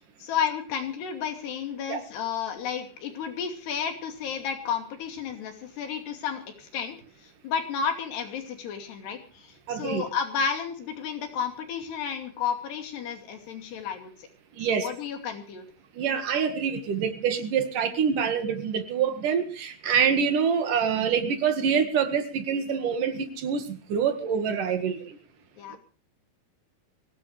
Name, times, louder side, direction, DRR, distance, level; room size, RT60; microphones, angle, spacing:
voice 1, 0.2-7.0 7.2-14.1 14.7-15.7 25.6-25.8, left 7 dB, 85° left, 4 dB, 4.7 m, -32 dB
voice 2, 9.7-10.0 14.6-14.9 16.0-25.2, right 7 dB, 60° right, 7 dB, 3.1 m, -26 dB
24.0 x 17.0 x 3.3 m, 0.37 s
omnidirectional pair, 4.6 m